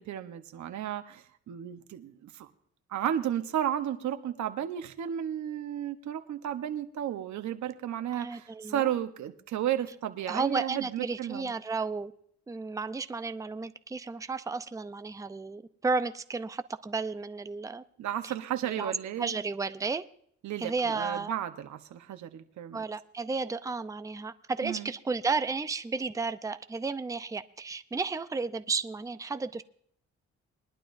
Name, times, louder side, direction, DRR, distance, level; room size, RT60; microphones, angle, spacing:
voice 1, 0.0-2.5 2.9-11.5 18.0-19.4 20.4-22.8 24.6-24.9, right 10 dB, 70° right, 1.0 m, -33 dB
voice 2, 8.1-8.9 10.3-12.1 12.5-17.8 18.2-18.3 18.6-18.9 19.2-20.0 20.6-21.3 22.7-29.6, right 4 dB, 10° right, 0.6 m, -33 dB
21.5 x 11.5 x 2.6 m
cardioid pair, 90°, 30 cm